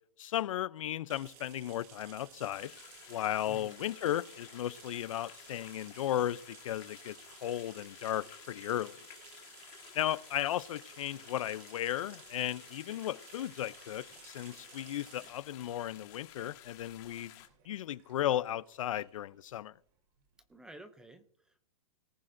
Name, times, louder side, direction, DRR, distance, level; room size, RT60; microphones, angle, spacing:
voice 1, 0.2-2.7 3.1-9.0 10.0-17.3 17.7-19.7, left 12 dB, 65° left, 0.5 m, -35 dB
sound 1, 1.1-20.5, right 8 dB, 30° right, 1.3 m, -56 dB
sound 2, 2.5-17.5, left 13 dB, 30° left, 1.6 m, -54 dB
voice 2, 3.5-3.9 20.5-21.6, right 2 dB, 5° right, 0.4 m, -52 dB
18.0 x 15.0 x 2.6 m
hypercardioid pair, 160°, 19 cm